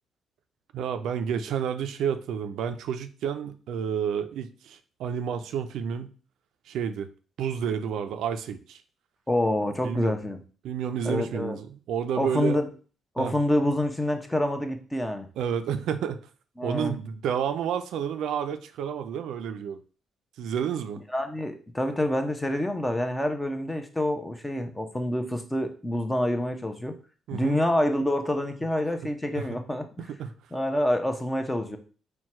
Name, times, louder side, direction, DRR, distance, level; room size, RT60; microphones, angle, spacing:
voice 1, 0.7-6.1 6.7-7.1 7.4-8.8 9.8-10.1 10.6-12.6 13.2-13.4 15.4-16.3 16.6-19.8 20.4-21.0 27.3-27.6 29.3-29.6 30.0-30.3, right 8 dB, 80° right, 9 dB, 0.4 m, -30 dB
voice 2, 9.3-10.4 11.0-11.6 12.2-12.7 13.1-15.3 16.6-16.9 21.1-26.9 27.3-30.0 30.5-31.8, left 1 dB, 10° left, 6 dB, 0.7 m, -27 dB
4.4 x 2.2 x 4.3 m, 0.38 s
cardioid pair, 90°, 0 cm